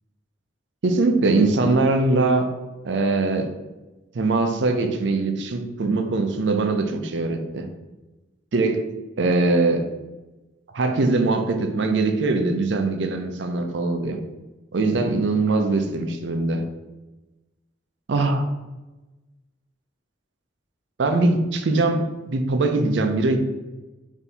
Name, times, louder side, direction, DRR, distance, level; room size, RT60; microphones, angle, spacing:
voice 1, 0.8-2.5 2.8-3.5 4.1-7.7 8.5-8.8 9.2-9.9 10.7-14.2 14.7-16.6 18.1-18.5 21.0-23.4, right 3 dB, 70° right, 6 dB, 0.5 m, -22 dB
3.4 x 2.7 x 4.2 m, 1.1 s
head